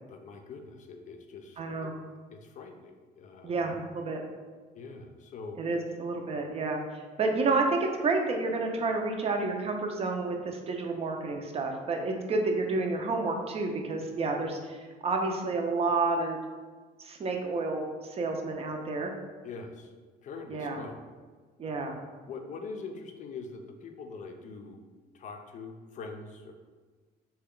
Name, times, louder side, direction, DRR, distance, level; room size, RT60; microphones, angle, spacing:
voice 1, 0.1-1.9 2.3-3.6 4.7-5.6 19.4-19.9 20.2-21.0 21.6-21.9 22.3-24.8 25.1-26.5, left 4 dB, 50° left, 5 dB, 0.5 m, -43 dB
voice 2, 1.6-2.0 3.4-4.2 5.6-16.4 17.0-19.1 20.5-20.8 21.6-21.9, right 3 dB, 35° right, 3 dB, 0.5 m, -30 dB
3.4 x 2.2 x 3.7 m, 1.4 s
cardioid pair, 110°, 17 cm